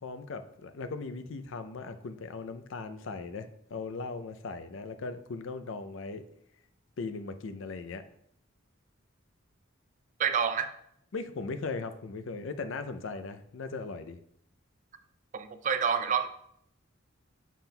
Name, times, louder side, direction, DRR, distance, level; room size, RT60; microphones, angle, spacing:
voice 1, 0.0-6.2 7.0-8.0 11.1-14.2, left 4 dB, 65° left, 10 dB, 0.5 m, -38 dB
voice 2, 10.2-10.7 15.3-16.3, right 7 dB, 40° right, 10 dB, 0.3 m, -28 dB
7.2 x 5.8 x 2.2 m, 0.73 s
head